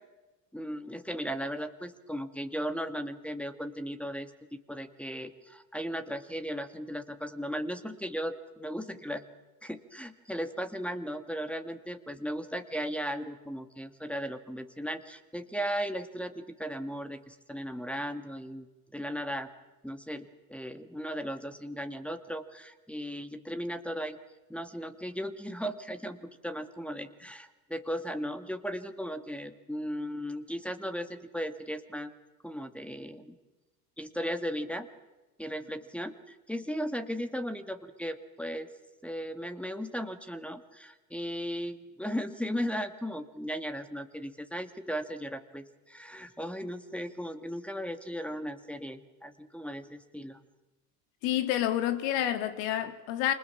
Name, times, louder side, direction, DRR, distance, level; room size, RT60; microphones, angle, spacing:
voice 1, 0.5-9.3 9.6-18.7 18.9-19.5 19.8-24.2 24.5-32.1 32.4-33.4 34.0-34.9 35.4-38.7 39.0-50.4, equal, 5° left, 2.0 m, -36 dB
voice 2, 51.2-53.3, left 11 dB, 65° left, 2.7 m, -29 dB
29.0 x 25.0 x 7.1 m
hypercardioid pair, 85°, 48 cm